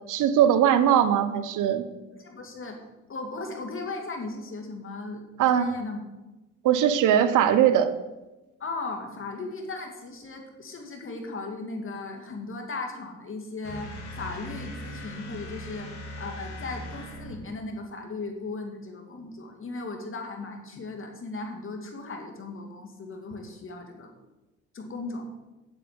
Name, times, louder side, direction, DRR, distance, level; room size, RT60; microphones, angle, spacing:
voice 1, 0.1-1.9 5.4-5.7 6.6-7.9, right 10 dB, 85° right, 11 dB, 0.9 m, -20 dB
voice 2, 2.1-2.8 3.1-6.0 8.6-24.1 24.7-25.3, left 3 dB, 45° left, 3 dB, 2.5 m, -37 dB
sound 1, 13.6-17.6, equal, 65° left, 3.0 m, -40 dB
8.3 x 7.8 x 8.1 m, 1.1 s
cardioid pair, 90°, 30 cm